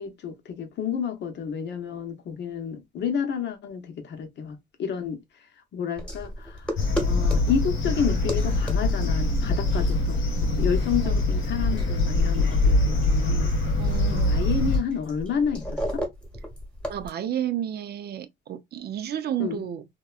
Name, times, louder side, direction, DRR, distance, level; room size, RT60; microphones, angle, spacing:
voice 1, 0.0-5.2 5.7-6.8 7.1-13.5 14.1-16.0 19.4-19.6, left 7 dB, 60° left, 0.8 m, -30 dB
sound 1, 5.9-17.1, equal, 5° left, 1.1 m, -35 dB
sound 2, 6.8-14.8, left 2 dB, 85° left, 1.1 m, -23 dB
voice 2, 13.8-14.4 16.9-19.8, right 10 dB, 55° right, 0.4 m, -31 dB
2.8 x 2.2 x 2.3 m
cardioid pair, 90°, 20 cm